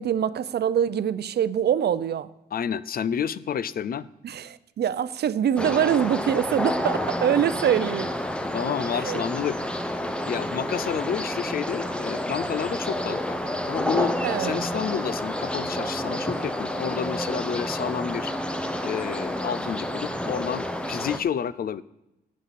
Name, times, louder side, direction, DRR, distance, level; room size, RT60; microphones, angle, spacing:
voice 1, 0.0-2.3 4.2-8.1 8.9-9.2 14.2-14.7, right 9 dB, 70° right, 0.5 m, -24 dB
voice 2, 2.5-4.1 8.5-9.6 10.2-13.4 13.7-18.3 18.8-21.8, left 8 dB, 55° left, 0.4 m, -30 dB
sound 1, 5.6-21.2, equal, 5° left, 0.7 m, -29 dB
18.0 x 7.5 x 4.2 m
wide cardioid pair, 145°, 18 cm